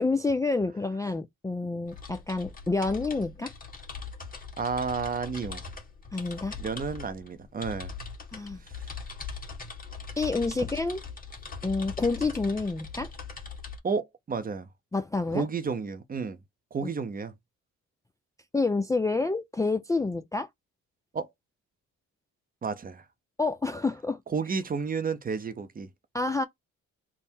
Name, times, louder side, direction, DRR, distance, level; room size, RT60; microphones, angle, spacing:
voice 1, 0.0-3.5 6.1-6.5 8.3-8.6 10.2-11.0 11.6-13.1 14.9-15.4 18.5-20.5 23.4-24.2 26.1-26.4, left 3 dB, 10° left, 0.4 m, -28 dB
sound 1, 1.8-13.8, left 5 dB, 30° left, 1.4 m, -41 dB
voice 2, 4.6-5.6 6.6-7.9 8.8-8.9 13.8-14.7 15.3-16.4 16.7-17.3 21.1-21.3 22.6-23.0 24.3-25.9, right 5 dB, 30° right, 0.6 m, -31 dB
3.5 x 2.1 x 4.3 m
cardioid pair, 90°, 30 cm